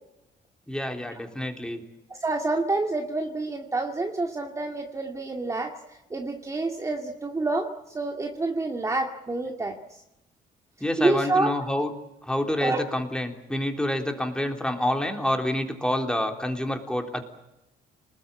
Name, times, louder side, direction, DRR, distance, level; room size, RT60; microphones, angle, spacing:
voice 1, 0.7-1.8 10.8-11.9 12.2-17.2, left 1 dB, 5° left, 3 dB, 3.6 m, -28 dB
voice 2, 2.1-7.7 7.9-9.8 11.0-11.6 12.6-12.8, right 2 dB, 20° right, 2 dB, 2.2 m, -28 dB
27.5 x 20.5 x 8.8 m, 0.92 s
cardioid pair, 110°, 17 cm